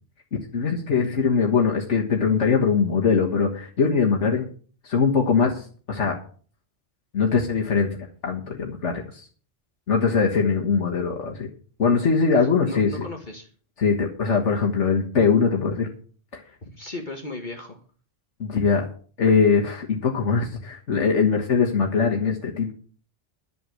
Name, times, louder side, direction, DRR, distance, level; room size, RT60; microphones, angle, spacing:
voice 1, 0.5-4.5 4.8-6.2 7.1-9.3 9.9-11.5 11.8-12.9 13.8-15.9 16.3-16.4 18.4-18.8 19.2-22.7, left 5 dB, 80° left, 1 dB, 1.8 m, -22 dB
voice 2, 12.3-13.5 16.6-17.8, left 2 dB, 45° left, 3 dB, 1.6 m, -36 dB
11.0 x 7.2 x 7.8 m, 0.43 s
omnidirectional pair, 1.2 m